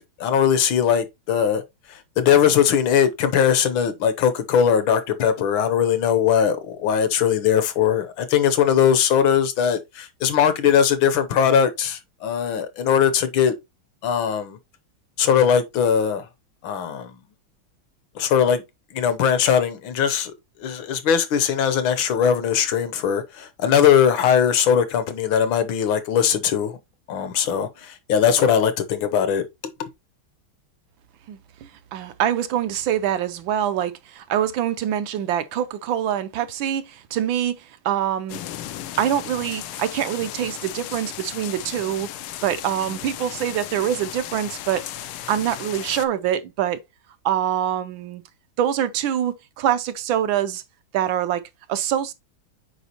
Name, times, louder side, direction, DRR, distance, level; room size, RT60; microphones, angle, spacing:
voice 1, 0.0-1.6 1.9-13.5 14.0-14.6 15.2-16.3 16.6-17.1 18.1-18.6 18.9-20.3 20.6-26.8 27.1-29.4 29.8-29.9, left 8 dB, 75° left, 1.6 m, -20 dB
voice 2, 31.3-38.4 39.0-42.1 42.4-44.8 45.3-46.8 47.2-48.2 48.6-50.6 50.9-51.4 51.7-52.1, right 10 dB, 75° right, 1.3 m, -25 dB
sound 1, 38.3-46.1, left 12 dB, 90° left, 1.5 m, -35 dB
8.0 x 5.0 x 2.9 m
omnidirectional pair, 2.3 m